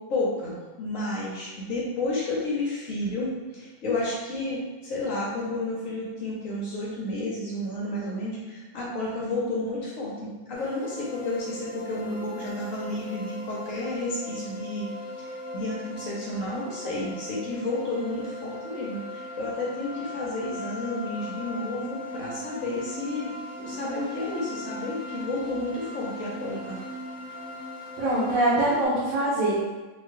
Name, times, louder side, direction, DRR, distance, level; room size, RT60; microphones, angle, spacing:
voice 1, 0.1-14.9 15.2-26.8, left 2 dB, 60° left, -5 dB, 0.9 m, -31 dB
sound 1, 10.5-28.8, left 1 dB, 15° right, 0.3 m, -39 dB
voice 2, 28.0-29.6, right 1 dB, 75° right, -7 dB, 1.4 m, -23 dB
3.8 x 2.5 x 3.1 m, 1.3 s
omnidirectional pair, 2.1 m